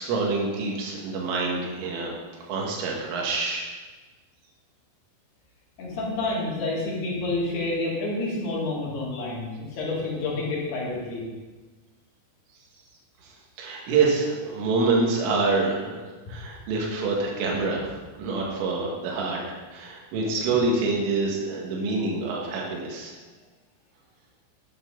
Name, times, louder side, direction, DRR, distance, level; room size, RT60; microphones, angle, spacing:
voice 1, 0.0-3.7 13.2-16.0 16.3-17.8 18.2-19.4 19.7-23.1, right 3 dB, 75° right, -2 dB, 4.5 m, -26 dB
voice 2, 5.8-11.2, left 2 dB, 55° left, -5 dB, 4.5 m, -29 dB
12.0 x 10.5 x 4.0 m, 1.3 s
omnidirectional pair, 5.9 m